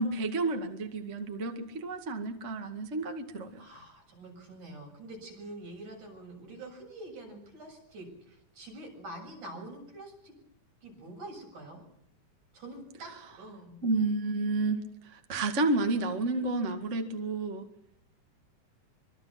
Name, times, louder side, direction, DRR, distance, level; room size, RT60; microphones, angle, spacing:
voice 1, 0.0-3.6 13.8-17.7, right 2 dB, 25° right, 5 dB, 2.0 m, -31 dB
voice 2, 3.6-10.4 10.8-11.8 12.5-13.8, right 1 dB, 75° right, 1 dB, 8.8 m, -46 dB
25.5 x 24.0 x 6.0 m, 0.71 s
omnidirectional pair, 3.6 m